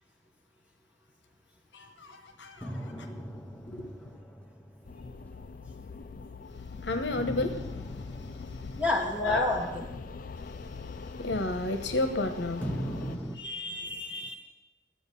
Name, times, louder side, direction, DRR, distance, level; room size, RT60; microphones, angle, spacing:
voice 1, 1.7-3.2 3.7-3.9 6.8-8.8 9.2-9.5 10.4-13.2, left 2 dB, 70° left, 1.1 m, -33 dB
sound 1, 2.6-6.3 7.1-12.1 12.6-13.4, right 1 dB, 10° left, 0.8 m, -41 dB
sound 2, 4.8-13.2, left 4 dB, 50° left, 0.4 m, -42 dB
voice 2, 8.8-9.8 13.3-14.3, left 2 dB, 10° right, 2.6 m, -30 dB
12.5 x 8.0 x 6.9 m
head